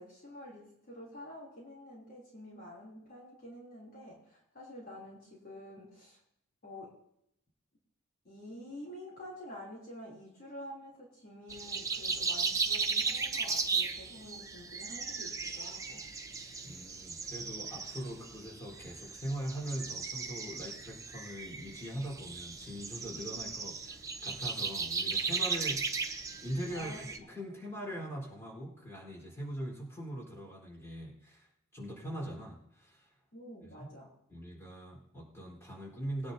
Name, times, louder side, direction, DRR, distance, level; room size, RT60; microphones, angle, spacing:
voice 1, 0.0-6.2 6.6-7.0 8.2-16.1 26.7-27.1 33.3-34.1, left 1 dB, 40° left, -5 dB, 3.3 m, -48 dB
sound 1, 11.5-27.2, right 4 dB, 15° right, 0.8 m, -36 dB
voice 2, 16.6-33.1 33.6-33.9 34.3-36.3, equal, 15° left, -4 dB, 4.3 m, -42 dB
21.5 x 10.0 x 2.8 m, 0.77 s
head